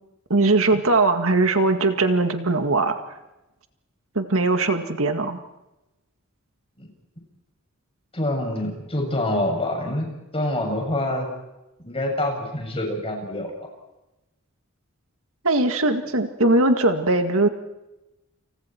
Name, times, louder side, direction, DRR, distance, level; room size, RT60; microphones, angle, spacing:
voice 1, 0.3-3.0 4.2-5.4 15.4-17.5, right 2 dB, 65° right, 6 dB, 2.0 m, -20 dB
voice 2, 8.1-11.3 11.8-13.7, left 1 dB, 25° left, 1 dB, 7.5 m, -26 dB
29.5 x 29.0 x 4.6 m, 0.98 s
head